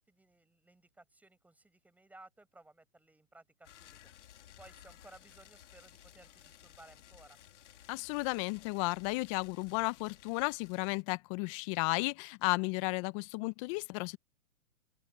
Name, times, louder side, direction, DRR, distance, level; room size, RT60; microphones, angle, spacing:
voice 1, 0.1-4.0 4.6-7.4, right 2 dB, 5° right, 5.4 m, -59 dB
sound 1, 3.6-11.0, left 11 dB, 60° left, 3.8 m, -57 dB
voice 2, 7.9-14.2, left 26 dB, 25° left, 0.8 m, -33 dB
open air
hypercardioid pair, 140°, 41 cm